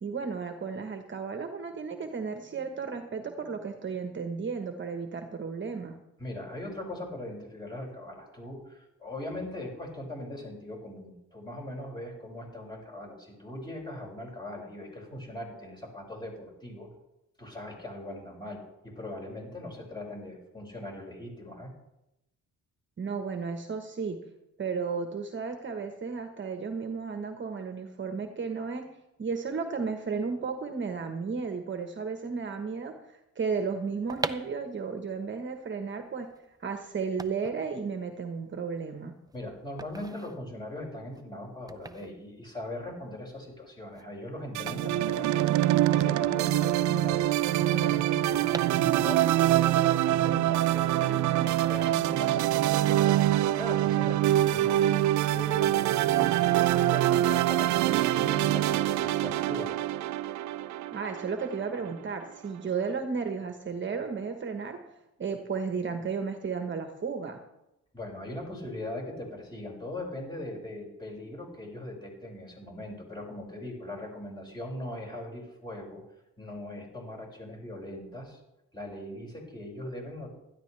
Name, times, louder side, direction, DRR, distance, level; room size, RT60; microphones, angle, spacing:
voice 1, 0.0-6.0 23.0-24.2 24.6-28.8 29.2-32.9 33.3-36.3 36.6-39.1 60.9-64.8 65.2-67.4, right 5 dB, 40° right, 5 dB, 1.3 m, -33 dB
voice 2, 6.2-16.9 17.4-21.7 39.3-48.4 48.7-53.2 53.6-60.0 67.9-76.0 76.4-78.4 78.7-80.3, left 1 dB, 15° left, -3 dB, 6.3 m, -40 dB
sound 1, 33.8-46.0 46.2-46.3 46.5-49.4 49.8-50.8 51.4-52.4 52.7-53.0, right 3 dB, 15° right, 0.6 m, -43 dB
sound 2, 44.5-61.9, right 13 dB, 70° right, 0.5 m, -25 dB
16.5 x 13.0 x 3.4 m, 0.89 s
cardioid pair, 90°, 30 cm